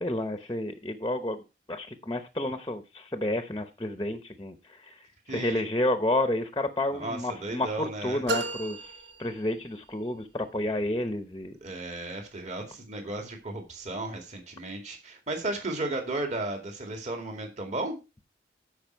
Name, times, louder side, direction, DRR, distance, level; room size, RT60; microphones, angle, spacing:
voice 1, 0.0-1.4 1.7-5.0 5.3-8.9 9.2-11.5, left 1 dB, 20° left, 9 dB, 0.8 m, -30 dB
voice 2, 5.3-5.6 6.9-8.2 11.6-17.9, right 2 dB, 40° right, 3 dB, 2.3 m, -34 dB
sound 1, 8.3-9.9, right 2 dB, 65° right, 1.0 m, -34 dB
14.0 x 5.2 x 4.6 m, 0.29 s
head